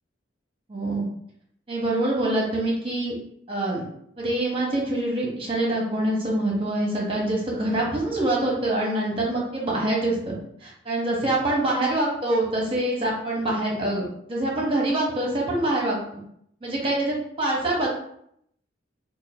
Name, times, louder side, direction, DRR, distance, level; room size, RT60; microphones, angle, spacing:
voice 1, 0.7-1.1 1.7-3.1 3.5-3.8 4.2-10.4 10.6-16.2 16.6-17.9, right 1 dB, 30° right, -3 dB, 0.9 m, -25 dB
2.6 x 2.5 x 4.1 m, 0.71 s
head